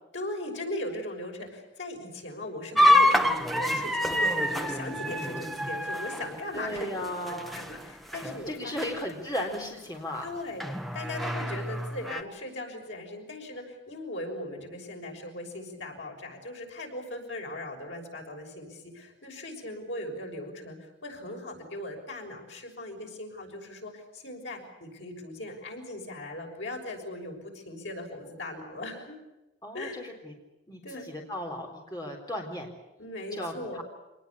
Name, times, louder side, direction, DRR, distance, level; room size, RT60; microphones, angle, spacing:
voice 1, 0.1-6.9 7.2-8.8 10.2-29.2 29.7-30.0 30.8-31.1 33.0-33.8, left 1 dB, 85° left, 1 dB, 6.4 m, -39 dB
sound 1, 2.8-7.8 8.1-8.5 8.8-8.9 9.5-9.6 10.6-12.2, left 1 dB, ahead, 1.1 m, -26 dB
voice 2, 6.5-7.6 8.5-10.3 29.6-30.3 30.7-32.7 33.3-33.8, left 1 dB, 20° left, 1 dB, 3.8 m, -35 dB
26.0 x 19.5 x 8.5 m, 0.99 s
head